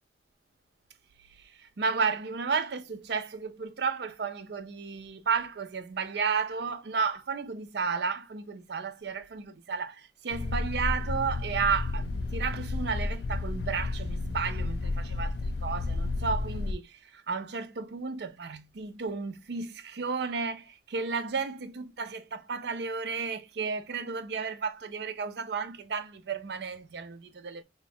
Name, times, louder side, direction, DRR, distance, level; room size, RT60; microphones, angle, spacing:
voice 1, 1.4-27.6, right 5 dB, 60° right, 0.5 m, -33 dB
sound 1, 10.3-16.7, left 3 dB, 60° left, 0.3 m, -32 dB
3.1 x 2.3 x 4.2 m
head